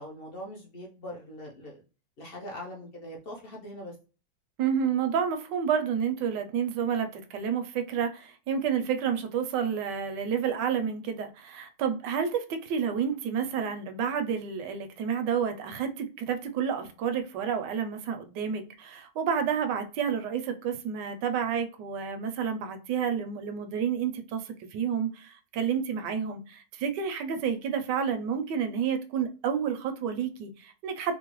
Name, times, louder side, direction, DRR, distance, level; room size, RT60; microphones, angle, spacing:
voice 1, 0.0-1.8 2.2-4.0, equal, 55° left, -2 dB, 0.6 m, -42 dB
voice 2, 4.6-31.1, right 7 dB, 75° right, 7 dB, 1.2 m, -30 dB
3.7 x 2.0 x 3.0 m, 0.35 s
omnidirectional pair, 1.9 m